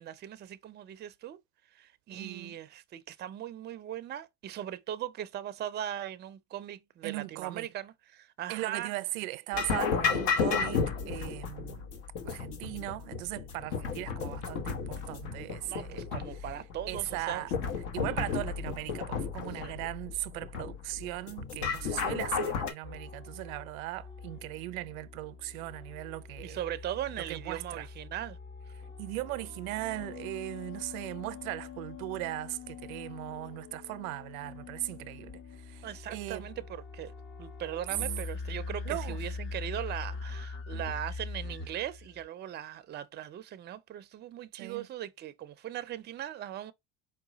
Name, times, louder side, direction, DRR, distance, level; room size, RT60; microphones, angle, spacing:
voice 1, 0.0-1.4 1.7-8.9 15.6-17.5 19.6-19.8 26.4-28.4 35.8-37.1 37.4-46.7, right 11 dB, 25° right, 0.5 m, -39 dB
voice 2, 2.1-2.6 7.0-7.7 8.5-11.9 12.2-16.0 16.9-17.5 17.9-26.6 27.2-27.9 29.0-36.5 38.8-39.2 44.5-44.9, right 19 dB, 85° right, 0.5 m, -38 dB
sound 1, 9.5-22.7, left 5 dB, 65° left, 1.2 m, -33 dB
sound 2, 22.8-42.3, left 4 dB, 30° left, 0.7 m, -43 dB
4.7 x 2.3 x 3.9 m
supercardioid pair, 100°, 40 cm